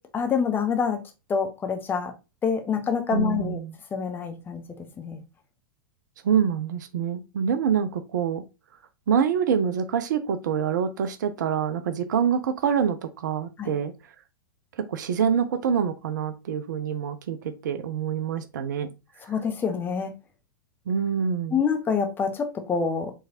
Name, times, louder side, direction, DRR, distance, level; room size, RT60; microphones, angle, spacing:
voice 1, 0.1-1.0 1.3-2.1 2.4-3.6 3.9-5.2 13.6-13.7 19.3-20.1 21.5-23.1, left 6 dB, 15° left, 0.7 m, -26 dB
voice 2, 3.1-3.8 6.2-8.4 9.1-13.9 14.8-18.9 20.9-21.6, right 7 dB, 55° right, 0.5 m, -26 dB
4.6 x 3.2 x 2.7 m
figure-of-eight pair, 100°, 12 cm